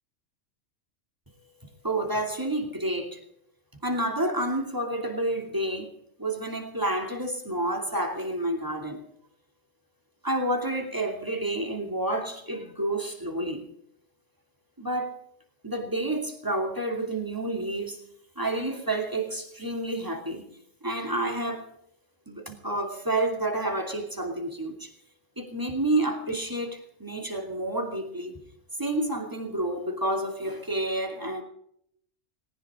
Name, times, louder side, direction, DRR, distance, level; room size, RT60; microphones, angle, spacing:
voice 1, 1.8-3.2 3.8-5.9 6.2-9.0 10.2-13.6 14.8-15.1 15.6-18.0 18.4-20.4 20.8-21.7 22.3-24.9 25.4-28.4 28.8-31.4, right 1 dB, 15° right, 2.7 m, -29 dB
19.5 x 18.0 x 3.7 m
omnidirectional pair, 1.2 m